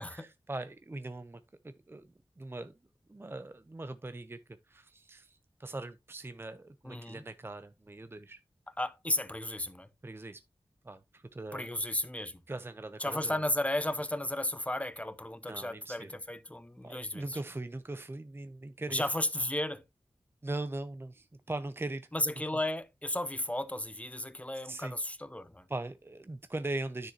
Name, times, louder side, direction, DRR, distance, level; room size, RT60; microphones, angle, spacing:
voice 1, 0.0-2.7 3.1-4.4 4.7-8.4 10.0-10.4 10.8-11.7 12.5-13.4 15.5-16.2 16.8-19.1 20.4-22.1 24.6-25.0 25.7-27.1, right 2 dB, 25° right, 0.6 m, -40 dB
voice 2, 6.8-7.2 8.8-9.9 11.5-12.4 13.0-17.4 18.9-19.8 22.1-25.6, left 1 dB, 15° left, 0.8 m, -34 dB
10.0 x 6.4 x 3.0 m
wide cardioid pair, 80°, 10 cm